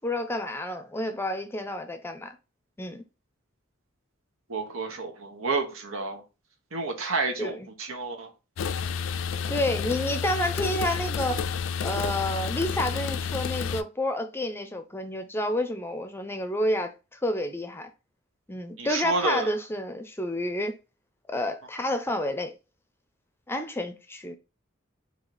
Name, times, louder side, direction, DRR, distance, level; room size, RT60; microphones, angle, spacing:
voice 1, 0.0-2.4 2.8-3.0 7.4-7.7 9.5-11.5 11.8-17.9 18.5-20.8 21.3-22.5 23.5-24.4, left 1 dB, 10° left, 0.5 m, -30 dB
voice 2, 4.5-6.2 6.7-8.3 18.8-19.5, right 3 dB, 90° right, 1.2 m, -30 dB
sound 1, 8.6-13.8, left 6 dB, 70° left, 0.4 m, -30 dB
4.0 x 2.8 x 4.7 m
head